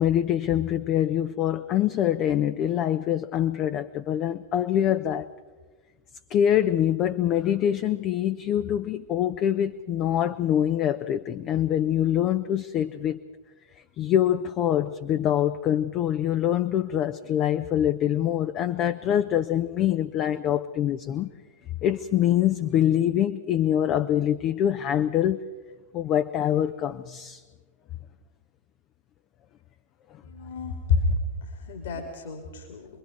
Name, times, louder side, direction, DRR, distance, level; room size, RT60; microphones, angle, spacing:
voice 1, 0.0-5.3 6.3-13.2 14.0-21.3 21.8-25.4 25.9-27.4, left 10 dB, 35° left, 10 dB, 0.7 m, -24 dB
voice 2, 30.2-32.9, left 3 dB, 60° left, 2 dB, 3.4 m, -29 dB
28.0 x 22.0 x 4.7 m, 1.3 s
figure-of-eight pair, 90°, 0 cm